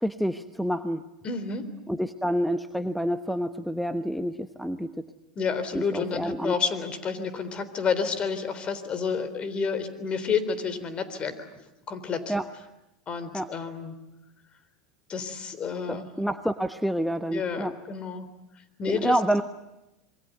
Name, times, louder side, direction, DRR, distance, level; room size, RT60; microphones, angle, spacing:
voice 1, 0.0-1.0 1.9-4.9 5.7-6.6 12.3-12.5 13.3-13.5 15.9-17.7 18.9-19.4, equal, ahead, 10 dB, 1.1 m, -28 dB
voice 2, 1.2-1.6 5.4-11.3 11.9-12.3 13.1-13.9 15.1-16.1 17.3-18.3 18.8-19.2, left 5 dB, 35° left, 12 dB, 3.8 m, -30 dB
27.0 x 22.5 x 9.3 m, 0.93 s
hypercardioid pair, 95°, 3 cm